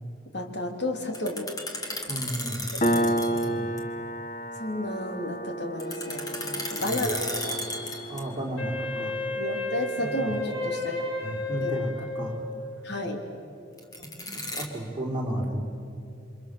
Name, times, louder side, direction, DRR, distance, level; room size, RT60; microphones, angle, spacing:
voice 1, 0.3-1.5 2.7-3.2 4.6-7.8 9.4-11.1 11.6-11.7 12.0-12.1 12.8-13.2, left 1 dB, 55° left, 3 dB, 3.3 m, -32 dB
sound 1, 1.0-3.5 3.8-3.9 5.8-8.4 13.8-14.7, left 2 dB, 20° left, 2.5 m, -35 dB
voice 2, 2.1-3.8 6.8-7.1 8.1-9.1 10.0-10.3 11.2-11.9 12.1-12.5 14.0-15.6, right 1 dB, 25° right, -1 dB, 4.3 m, -33 dB
Piano, 2.8-10.0, right 1 dB, 35° left, 1.0 m, -31 dB
Wind instrument woodwind instrument, 8.6-12.8, left 2 dB, 80° left, 3.7 m, -32 dB
29.5 x 25.5 x 7.0 m, 2.7 s
head